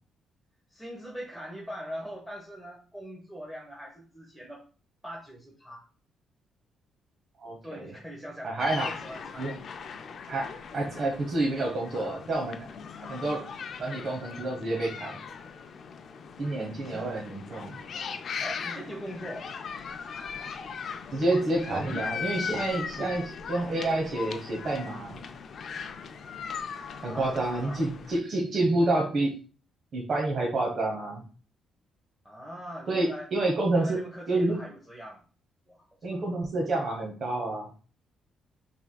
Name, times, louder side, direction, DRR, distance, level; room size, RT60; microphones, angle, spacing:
voice 1, 0.7-4.6 5.0-5.8 7.6-9.5 16.8-17.1 18.4-19.5 26.9-27.9 32.2-33.3 33.7-35.2 35.7-35.8 36.1-36.2, equal, 5° right, -2 dB, 1.1 m, -42 dB
voice 2, 7.4-7.9 8.4-8.9 9.4-9.5 10.3-10.5 10.7-12.7 13.0-13.4 13.8-15.2 16.4-17.8 21.1-25.2 27.0-29.3 29.9-31.2 32.9-34.0 34.3-34.6 36.0-37.7, right 2 dB, 50° right, -1 dB, 1.2 m, -28 dB
sound 1, 8.6-28.2, left 6 dB, 55° left, 0.4 m, -39 dB
5.8 x 3.5 x 2.3 m, 0.38 s
cardioid pair, 90°, 0 cm